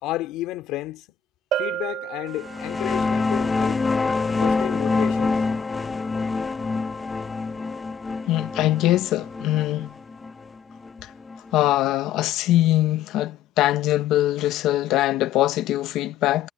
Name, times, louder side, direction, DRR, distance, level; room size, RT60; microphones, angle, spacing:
voice 1, 0.0-1.1 1.6-3.8 4.4-5.4, left 16 dB, 85° left, 2.6 m, -31 dB
Bell, 1.5-3.1, right 12 dB, 55° right, 0.6 m, -30 dB
sound 1, 2.4-11.7, left 3 dB, 15° left, 0.8 m, -26 dB
voice 2, 8.3-9.9 11.0-11.1 11.5-16.5, left 14 dB, 70° left, 0.8 m, -22 dB
cardioid pair, 155°, 0 cm